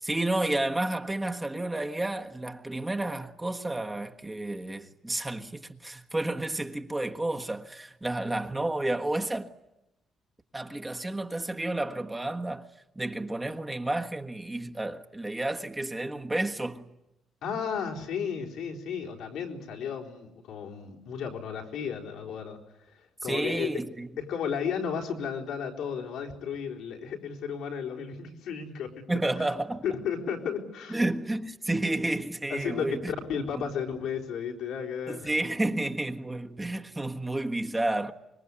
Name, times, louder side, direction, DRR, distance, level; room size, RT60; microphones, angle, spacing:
voice 1, 0.0-9.5 10.5-12.7 12.9-16.9 23.2-24.1 29.1-29.8 30.9-33.1 33.5-33.7 35.1-38.1, right 2 dB, 15° right, 1.5 m, -31 dB
voice 2, 17.4-22.6 22.9-23.7 24.2-29.0 29.8-31.0 32.5-35.3, left 7 dB, 85° left, 4.2 m, -33 dB
25.5 x 21.5 x 9.9 m
cardioid pair, 90°, 0 cm